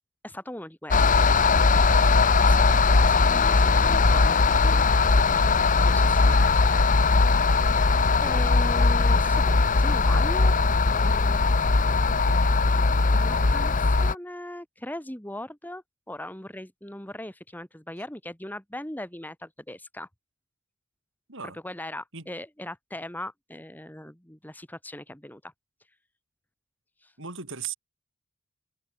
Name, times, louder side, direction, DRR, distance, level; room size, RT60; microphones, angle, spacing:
voice 1, 0.2-1.3 2.4-4.9 5.8-6.9 8.2-10.5 10.9-11.4 13.1-20.1 21.6-25.5 27.0-27.1, left 1 dB, 10° left, 1.8 m, -39 dB
sound 1, 0.9-14.1, left 4 dB, 35° left, 0.8 m, -20 dB
voice 2, 27.2-27.8, right 7 dB, 55° right, 5.6 m, -36 dB
head